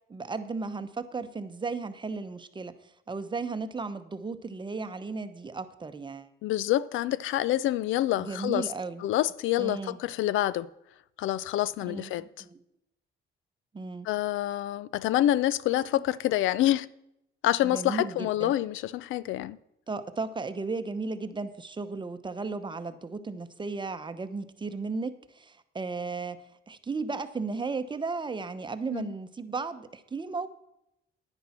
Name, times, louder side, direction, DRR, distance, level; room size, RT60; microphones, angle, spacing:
voice 1, 0.1-6.3 8.2-9.0 9.6-10.0 11.8-12.6 13.7-14.1 15.9-16.0 17.6-18.5 19.9-26.4 26.7-30.5, right 4 dB, 25° right, 0.8 m, -35 dB
voice 2, 6.4-8.7 9.0-10.7 11.2-12.2 14.0-16.9 17.4-19.6 28.9-29.1, left 13 dB, 80° left, 0.4 m, -27 dB
10.5 x 9.9 x 4.3 m
cardioid pair, 90°, 20 cm